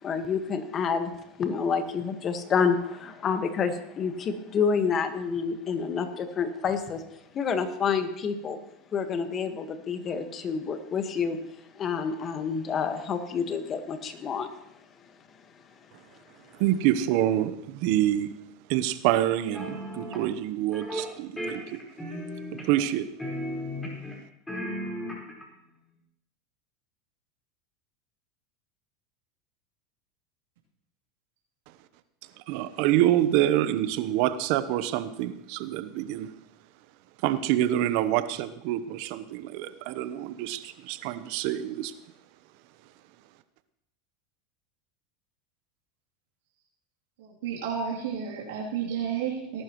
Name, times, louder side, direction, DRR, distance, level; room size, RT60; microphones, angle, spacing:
voice 1, 0.0-1.1 1.4-8.6 8.9-11.4 11.7-14.5, left 6 dB, 35° left, 8 dB, 1.5 m, -28 dB
voice 2, 16.6-18.3 18.7-21.8 22.7-23.1 32.5-36.3 37.2-41.9, right 13 dB, 65° right, 12 dB, 0.9 m, -26 dB
sound 1, 19.5-20.2 20.7-21.1 21.4-22.9 23.2-24.2 24.5-25.4, equal, 10° left, 4.4 m, -35 dB
voice 3, 47.2-49.6, right 7 dB, 80° right, -4 dB, 3.1 m, -32 dB
19.0 x 11.5 x 3.1 m, 0.80 s
supercardioid pair, 110°, 0 cm